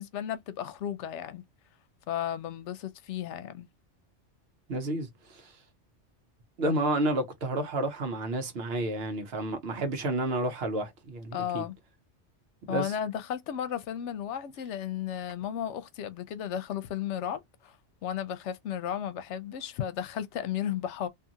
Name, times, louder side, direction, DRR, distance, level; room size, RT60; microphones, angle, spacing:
voice 1, 0.0-1.4 2.1-3.7 11.3-11.7 12.7-17.8 18.0-21.1, left 10 dB, 80° left, 0.9 m, -34 dB
voice 2, 4.7-5.6 6.6-11.6 12.7-13.0, right 1 dB, 60° right, 1.0 m, -30 dB
2.6 x 2.4 x 2.7 m
omnidirectional pair, 1.2 m